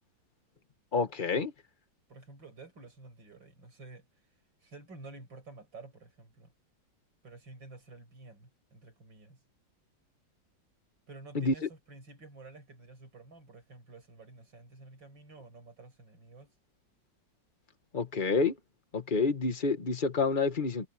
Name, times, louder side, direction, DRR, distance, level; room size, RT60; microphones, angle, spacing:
voice 1, 0.9-1.5 11.4-11.7 17.9-18.6 18.9-20.9, left 4 dB, 30° left, 1.7 m, -28 dB
voice 2, 2.1-4.1 4.6-6.5 7.2-9.4 11.1-16.5, right 3 dB, 85° right, 6.9 m, -51 dB
omnidirectional pair, 2.0 m